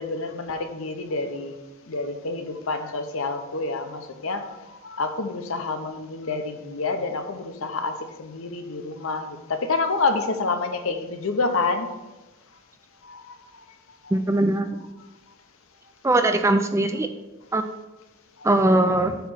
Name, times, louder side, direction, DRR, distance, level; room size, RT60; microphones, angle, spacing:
voice 1, 0.0-1.6 1.9-11.9 13.0-13.3 14.0-14.2, left 3 dB, 65° left, 6 dB, 0.7 m, -28 dB
voice 2, 14.1-14.8 16.0-17.1 17.5-17.6 18.4-19.2, right 2 dB, 15° right, 7 dB, 0.3 m, -20 dB
7.9 x 3.1 x 6.2 m, 1.1 s
head